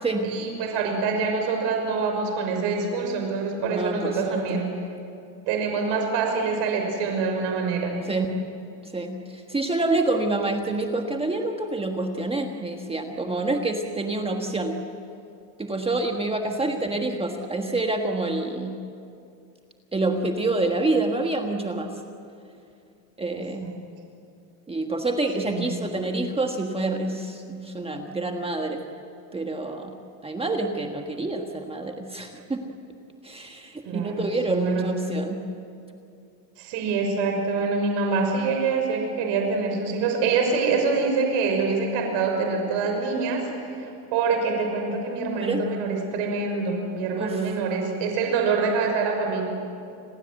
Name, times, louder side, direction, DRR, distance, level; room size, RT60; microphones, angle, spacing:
voice 1, 0.2-4.7 5.5-8.0 16.8-16.9 23.3-23.8 25.4-25.8 33.8-34.9 36.6-43.5 43.8-49.4, right 4 dB, 65° right, 3 dB, 6.1 m, -25 dB
voice 2, 3.6-4.6 8.1-8.3 8.8-14.8 15.6-18.8 19.9-21.9 23.2-23.7 24.7-28.8 29.3-29.9 30.2-32.6 33.2-35.4 45.4-45.6 47.2-47.4, right 2 dB, 10° right, 3 dB, 1.5 m, -27 dB
30.0 x 21.5 x 7.9 m, 2.5 s
cardioid pair, 135°, 47 cm